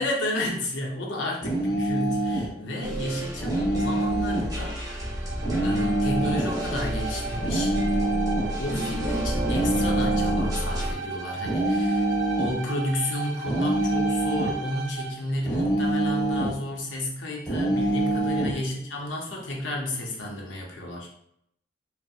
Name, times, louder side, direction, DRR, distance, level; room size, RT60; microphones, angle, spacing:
voice 1, 0.0-5.1 5.6-7.7 8.6-12.1 12.4-21.1, left 1 dB, 85° left, -1 dB, 0.6 m, -32 dB
sound 1, 1.4-2.5 3.4-4.5 5.4-6.6 7.4-8.5 9.4-10.6 11.4-12.6 13.5-14.6 15.5-16.6 17.5-18.6, right 1 dB, 20° left, 0.8 m, -25 dB
sound 2, 2.8-10.9, equal, 20° right, 0.5 m, -30 dB
Bowed string instrument, 4.7-15.2, right 4 dB, 85° right, 0.4 m, -36 dB
2.6 x 2.0 x 2.3 m, 0.72 s
head